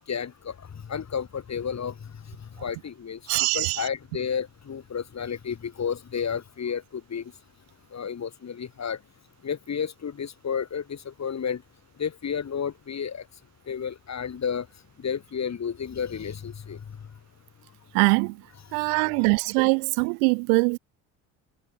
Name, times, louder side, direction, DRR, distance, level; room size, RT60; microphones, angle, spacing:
voice 1, 0.0-7.3 7.9-9.0 9.4-11.6 12.0-13.3 13.6-14.7 15.0-17.1 18.7-19.3, left 7 dB, 40° left, 4.6 m, -32 dB
voice 2, 3.3-3.8 17.9-18.4 18.7-20.8, right 39 dB, 80° right, 3.0 m, -22 dB
hypercardioid pair, 70°, 42 cm